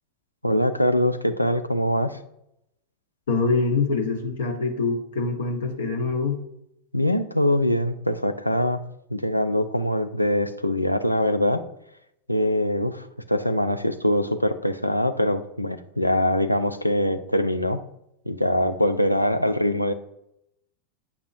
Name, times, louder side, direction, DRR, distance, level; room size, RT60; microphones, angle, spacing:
voice 1, 0.4-2.2 6.9-8.8 9.1-11.6 12.3-17.8 18.3-19.9, left 1 dB, 90° left, 9 dB, 0.5 m, -23 dB
voice 2, 3.3-6.4, left 4 dB, 65° left, 4 dB, 0.9 m, -24 dB
8.5 x 6.0 x 2.5 m, 0.78 s
figure-of-eight pair, 90°, 0 cm